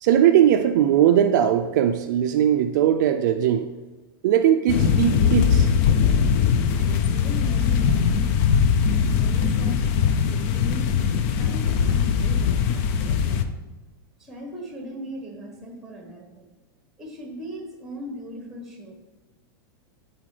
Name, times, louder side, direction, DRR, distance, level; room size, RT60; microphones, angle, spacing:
voice 1, 0.0-3.7 4.2-5.7, right 10 dB, 50° right, 6 dB, 0.4 m, -19 dB
sound 1, 4.7-13.4, left 7 dB, 35° left, 0.4 m, -21 dB
voice 2, 6.7-8.3 8.9-10.9 11.4-13.5 14.2-16.5 17.0-18.9, equal, 5° right, 1 dB, 1.1 m, -38 dB
11.5 x 4.2 x 3.3 m, 1.2 s
supercardioid pair, 165°, 12 cm